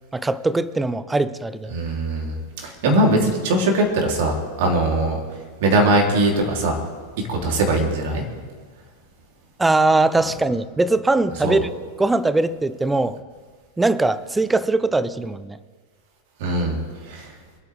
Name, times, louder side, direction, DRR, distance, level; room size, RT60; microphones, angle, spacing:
voice 1, 0.1-1.8 9.6-11.7 12.0-13.2 13.8-15.6, right 2 dB, 10° right, 17 dB, 0.6 m, -21 dB
voice 2, 1.7-5.2 5.6-6.8 7.3-8.2 11.4-11.6 16.4-16.8 17.1-17.3, right 1 dB, 50° right, 0 dB, 3.4 m, -20 dB
27.0 x 9.1 x 3.6 m, 1.6 s
figure-of-eight pair, 90°, 0 cm